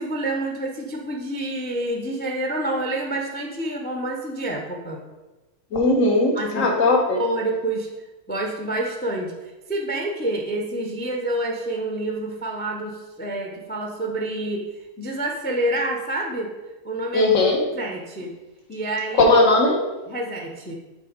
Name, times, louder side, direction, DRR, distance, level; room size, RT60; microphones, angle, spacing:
voice 1, 0.0-5.0 6.3-6.7 7.2-7.9 8.3-9.4 9.7-14.7 15.0-16.5 16.8-17.3 17.7-18.4 18.7-19.3 20.1-20.7, right 1 dB, 15° left, 1 dB, 0.4 m, -28 dB
voice 2, 5.7-7.2 17.1-17.6 19.1-19.8, left 2 dB, 65° left, 1 dB, 1.5 m, -18 dB
7.4 x 3.9 x 5.0 m, 1.1 s
omnidirectional pair, 1.5 m